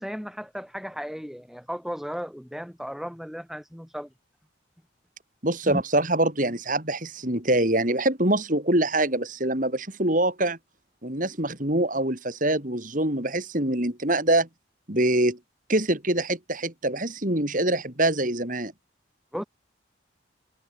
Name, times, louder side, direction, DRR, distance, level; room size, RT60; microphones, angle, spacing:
voice 1, 0.0-4.1 5.6-5.8 19.3-19.4, equal, ahead, 6.0 m, -35 dB
voice 2, 5.4-10.6 11.0-14.5 14.9-15.4 15.7-18.7, right 1 dB, 40° right, 4.1 m, -24 dB
head